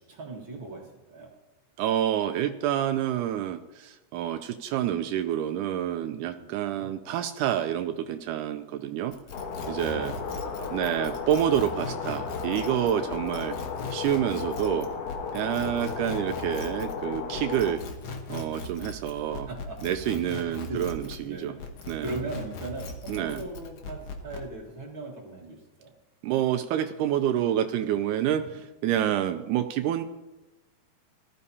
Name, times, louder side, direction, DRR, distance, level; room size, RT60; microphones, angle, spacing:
voice 1, 0.0-1.3 6.3-6.9 9.6-11.6 18.9-19.8 20.2-20.8 21.1-21.7 22.0-25.9, right 3 dB, 45° right, -1 dB, 2.0 m, -40 dB
voice 2, 1.8-9.1 9.7-10.1 10.7-13.6 13.9-14.9 15.3-17.8 18.3-19.5 19.8-21.5 21.9-22.2 23.1-23.4 26.2-30.0, right 11 dB, 80° right, 8 dB, 2.0 m, -28 dB
sound 1, 9.1-21.3 21.6-24.5, left 3 dB, 60° left, 2.0 m, -39 dB
sound 2, 9.3-17.7, left 6 dB, 75° left, 2.7 m, -35 dB
19.0 x 13.0 x 2.8 m, 1.0 s
omnidirectional pair, 3.6 m